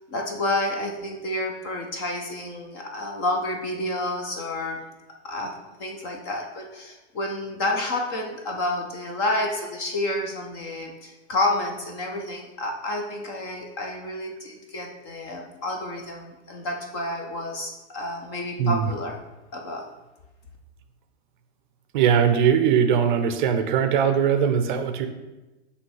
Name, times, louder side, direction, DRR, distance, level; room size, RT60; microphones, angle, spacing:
voice 1, 0.1-4.8 5.2-5.5 5.8-19.2 19.5-19.8, left 1 dB, 25° left, 1 dB, 0.4 m, -29 dB
voice 2, 18.6-18.9 21.9-25.1, right 7 dB, 45° right, 8 dB, 0.5 m, -20 dB
5.4 x 3.2 x 5.4 m, 1.1 s
supercardioid pair, 155°, 34 cm